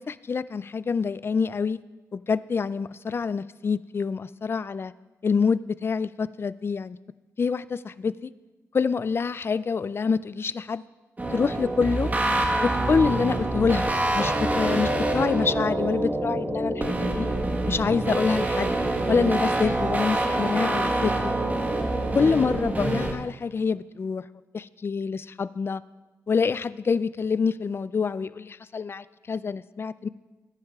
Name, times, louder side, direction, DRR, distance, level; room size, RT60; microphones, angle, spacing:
voice 1, 0.0-1.8 2.1-4.9 5.2-7.0 7.4-8.3 8.7-10.8 11.3-12.1 12.6-17.3 17.7-18.7 19.1-21.3 22.1-24.2 24.5-25.8 26.3-30.1, left 5 dB, 40° left, 17 dB, 0.3 m, -26 dB
sound 1, 11.2-23.1, right 2 dB, 25° right, 1.3 m, -26 dB
19.0 x 9.6 x 2.4 m, 1.2 s
cardioid pair, 75°, 6 cm